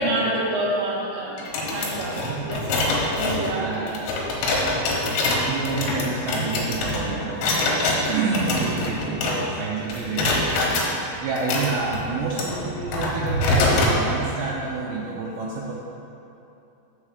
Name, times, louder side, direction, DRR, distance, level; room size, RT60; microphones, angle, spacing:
voice 1, 0.0-1.4 1.7-2.7 3.1-3.8, right 1 dB, 70° right, -5 dB, 2.2 m, -27 dB
sound 1, 1.4-9.6 9.9-10.9 11.4-14.0, left 2 dB, 75° left, 2.9 m, -24 dB
voice 2, 2.1-2.4 3.6-4.0 5.2-10.8 11.2-15.8, right 4 dB, 85° right, -3 dB, 2.6 m, -29 dB
6.4 x 4.9 x 6.8 m, 2.8 s
omnidirectional pair, 5.7 m